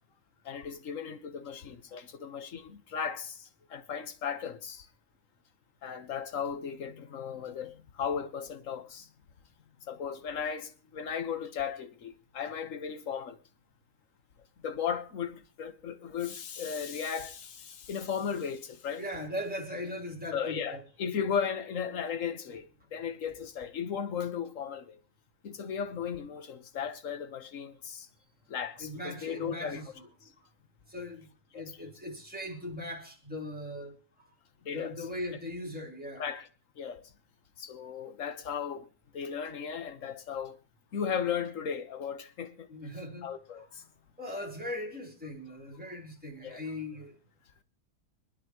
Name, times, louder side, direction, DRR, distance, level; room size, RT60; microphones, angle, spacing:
voice 1, 0.4-4.9 5.8-9.1 9.9-13.4 14.6-19.0 20.3-25.0 25.4-28.1 28.5-29.8 30.2-30.3 31.5-31.6 34.6-34.9 36.2-36.5 36.8-37.0 37.6-38.9 39.1-40.6 40.9-42.7 43.2-43.8 46.4-46.6, left 7 dB, 55° left, 1.5 m, -36 dB
voice 2, 19.0-20.8 28.8-29.9 30.9-31.3 31.5-34.3 34.7-36.2 42.7-43.3 43.6-43.7 44.2-47.2, left 1 dB, 5° right, 3.7 m, -39 dB
25.5 x 9.8 x 3.0 m
omnidirectional pair, 1.6 m